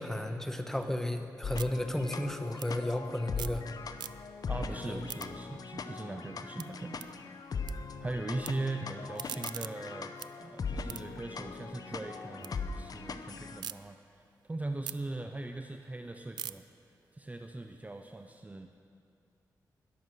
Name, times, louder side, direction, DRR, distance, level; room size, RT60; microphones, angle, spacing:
voice 1, 0.0-3.6 4.9-5.0, left 1 dB, 5° left, 6 dB, 1.1 m, -33 dB
sound 1, 0.7-3.7 3.9-4.5 4.8-7.7 8.0-8.5 8.9-12.5 12.9-13.7 14.2-18.4, right 9 dB, 80° right, 0.4 m, -46 dB
sound 2, 1.4-13.6, left 4 dB, 60° left, 0.7 m, -40 dB
voice 2, 4.5-7.0 7.3-7.4 8.0-14.2 14.5-16.6 17.1-18.7, right 2 dB, 20° right, 6 dB, 0.6 m, -40 dB
20.5 x 7.2 x 6.3 m, 2.4 s
cardioid pair, 70°, 7 cm